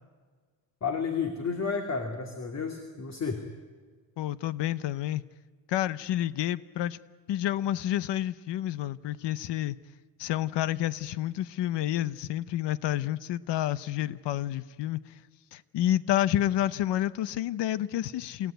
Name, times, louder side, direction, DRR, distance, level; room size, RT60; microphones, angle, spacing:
voice 1, 0.8-3.4, left 5 dB, 40° left, 2.5 m, -31 dB
voice 2, 4.2-5.2 5.7-7.0 7.3-9.8 10.2-15.0 15.5-18.5, left 12 dB, 80° left, 0.9 m, -29 dB
28.5 x 16.0 x 9.3 m
cardioid pair, 125°, 42 cm